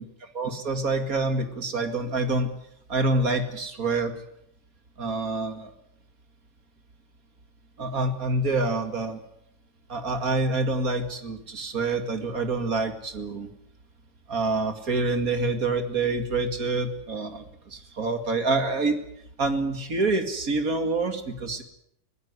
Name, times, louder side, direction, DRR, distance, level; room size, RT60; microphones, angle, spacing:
voice 1, 0.3-2.5 2.9-4.1 5.0-5.7 7.8-9.2 9.9-13.5 14.3-19.0 19.4-21.6, right 3 dB, 55° right, 8 dB, 2.6 m, -27 dB
22.0 x 16.5 x 9.6 m, 0.75 s
omnidirectional pair, 1.9 m